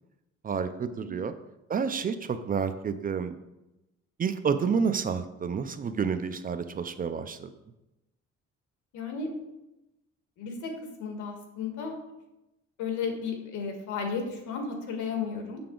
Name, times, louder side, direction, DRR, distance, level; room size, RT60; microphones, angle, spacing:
voice 1, 0.4-1.3 1.7-3.3 4.2-7.5, right 6 dB, 30° right, 11 dB, 0.5 m, -29 dB
voice 2, 8.9-9.3 10.4-10.7 11.0-11.9 12.8-15.6, left 5 dB, 90° left, 4 dB, 1.6 m, -33 dB
6.9 x 6.6 x 3.8 m, 0.94 s
cardioid pair, 125°, 29 cm